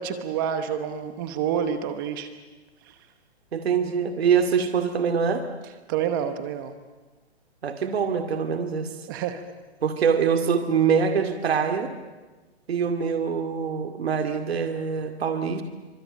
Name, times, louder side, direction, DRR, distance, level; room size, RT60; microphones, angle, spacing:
voice 1, 0.0-2.3 2.9-3.0 5.9-6.7 9.1-9.4, right 8 dB, 20° right, 9 dB, 1.0 m, -28 dB
voice 2, 3.5-5.4 7.6-8.9 9.8-11.9 12.7-15.6, right 6 dB, 70° right, 6 dB, 2.4 m, -24 dB
25.5 x 25.0 x 8.9 m, 1.2 s
hypercardioid pair, 165°, 33 cm